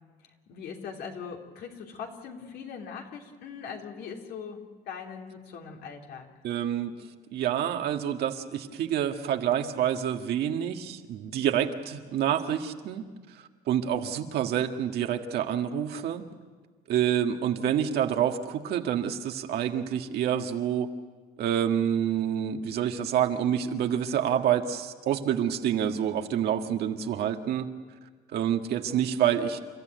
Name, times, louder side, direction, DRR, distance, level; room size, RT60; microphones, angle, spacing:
voice 1, 0.5-6.3, left 6 dB, 70° left, 1 dB, 3.2 m, -40 dB
voice 2, 6.4-6.9 7.3-13.0 13.7-16.2 16.9-20.9 21.4-27.7 28.3-29.6, right 9 dB, 70° right, 5 dB, 1.7 m, -27 dB
30.0 x 14.0 x 9.2 m, 1.4 s
cardioid pair, 110°, 17 cm